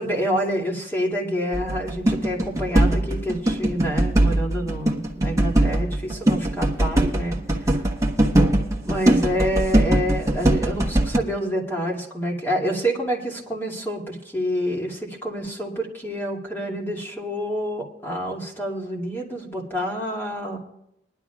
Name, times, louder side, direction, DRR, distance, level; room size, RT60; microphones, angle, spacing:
voice 1, 0.0-7.4 8.8-20.6, equal, 10° left, -2 dB, 2.5 m, -27 dB
sound 1, 1.5-11.2, right 1 dB, 20° right, 1.2 m, -21 dB
21.0 x 11.5 x 2.4 m, 0.81 s
head